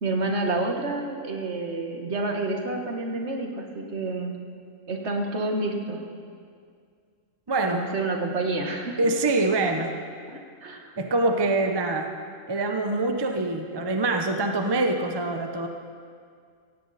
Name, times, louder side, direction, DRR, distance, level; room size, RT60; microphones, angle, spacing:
voice 1, 0.0-4.4 4.9-6.0 7.7-9.1 10.3-10.9, right 2 dB, 60° right, 2 dB, 1.7 m, -29 dB
voice 2, 7.5-7.9 9.0-9.9 11.0-12.1 12.5-15.7, right 2 dB, 20° right, 4 dB, 0.8 m, -24 dB
16.5 x 16.0 x 4.2 m, 2.2 s
omnidirectional pair, 1.4 m